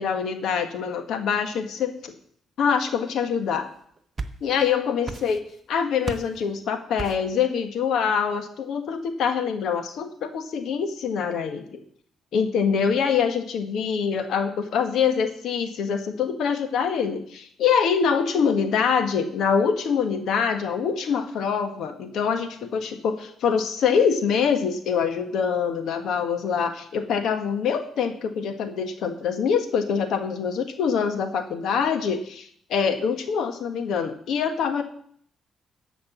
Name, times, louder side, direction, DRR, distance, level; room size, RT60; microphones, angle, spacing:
voice 1, 0.0-2.1 2.6-3.7 4.4-5.4 5.7-11.8 12.3-34.8, left 6 dB, 75° left, 7 dB, 1.5 m, -24 dB
sound 1, 3.8-4.7 5.0-5.7 6.0-6.4 7.0-7.4, right 3 dB, 30° right, 1.0 m, -35 dB
13.5 x 5.1 x 8.4 m, 0.63 s
cardioid pair, 90°, 0 cm